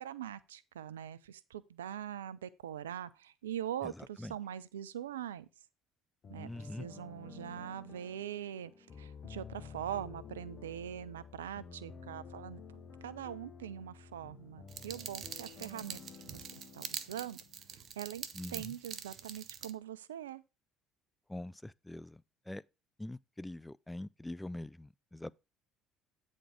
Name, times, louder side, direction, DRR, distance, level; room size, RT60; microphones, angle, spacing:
voice 1, 0.0-5.5 6.3-8.7 9.0-16.4 16.7-17.4 18.0-20.4, right 10 dB, 80° right, 0.4 m, -42 dB
sound 1, 6.2-17.9, left 6 dB, 40° left, 1.1 m, -51 dB
voice 2, 6.4-6.9 18.4-18.7 21.3-22.2 22.5-22.6 23.0-25.3, left 1 dB, 10° left, 0.3 m, -43 dB
sound 2, 14.7-19.7, right 8 dB, 50° right, 0.7 m, -45 dB
9.1 x 4.4 x 4.8 m
figure-of-eight pair, 60°, 0 cm